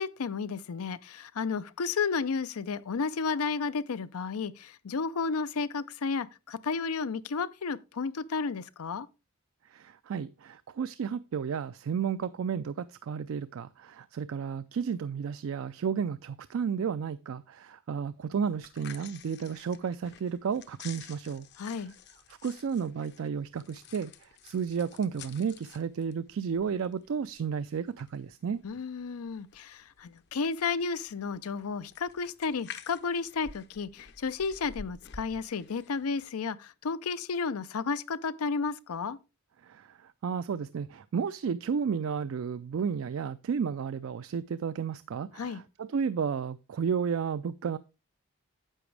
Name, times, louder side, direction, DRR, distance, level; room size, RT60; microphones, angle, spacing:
voice 1, 0.0-9.1 21.6-21.9 28.6-39.2 45.4-45.6, left 5 dB, 90° left, 0.5 m, -32 dB
voice 2, 9.7-21.5 22.3-28.6 39.6-47.8, right 6 dB, 65° right, 0.3 m, -32 dB
sound 1, 18.5-36.3, left 6 dB, 50° left, 0.7 m, -51 dB
9.9 x 7.0 x 3.3 m
head